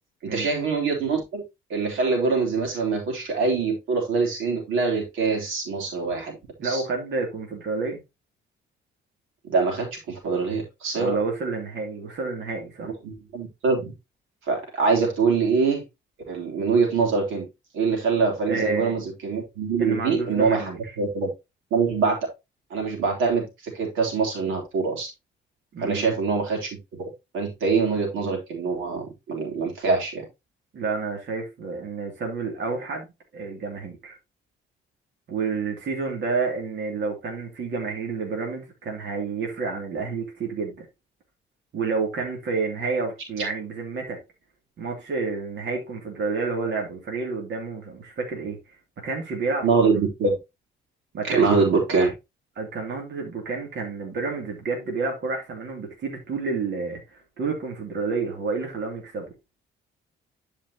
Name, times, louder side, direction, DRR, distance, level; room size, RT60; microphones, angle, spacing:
voice 1, 0.2-1.4 1.7-6.4 6.6-6.8 9.4-11.2 12.8-13.9 14.4-15.8 16.3-17.5 17.7-21.3 21.7-22.2 22.7-25.1 25.8-26.7 27.0-27.1 27.3-30.2 49.6-50.4 51.2-52.1, right 4 dB, 90° right, 3.5 m, -24 dB
voice 2, 6.6-8.0 11.0-12.9 18.5-18.9 19.8-20.8 25.7-26.1 30.7-33.1 33.3-34.2 35.3-40.8 41.7-44.2 44.8-49.7 51.1-51.5 52.6-59.3, right 4 dB, 65° right, 2.7 m, -29 dB
12.0 x 5.1 x 2.9 m
cardioid pair, 90°, 20 cm